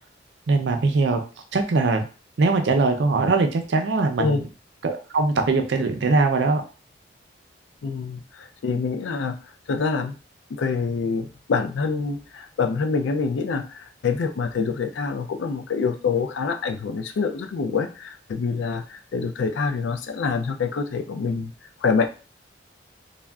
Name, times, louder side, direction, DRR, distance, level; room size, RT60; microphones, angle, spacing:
voice 1, 0.5-1.2 1.5-2.0 2.4-4.4 4.8-6.6, right 3 dB, 65° right, 6 dB, 0.4 m, -21 dB
voice 2, 7.8-9.4 9.7-10.1 10.5-21.5 21.8-22.1, left 5 dB, 80° left, 7 dB, 0.4 m, -26 dB
3.5 x 2.1 x 2.2 m, 0.35 s
head